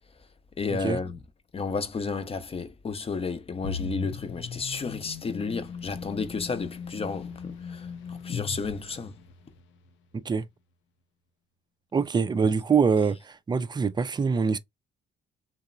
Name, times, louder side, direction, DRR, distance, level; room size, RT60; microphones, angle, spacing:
voice 1, 0.6-1.2 1.5-9.2, left 4 dB, 30° left, 0.6 m, -32 dB
sound 1, 3.6-9.6, left 5 dB, 75° left, 0.5 m, -38 dB
voice 2, 11.9-14.6, right 5 dB, 20° right, 0.4 m, -24 dB
2.9 x 2.0 x 2.5 m
cardioid pair, 90°, 20 cm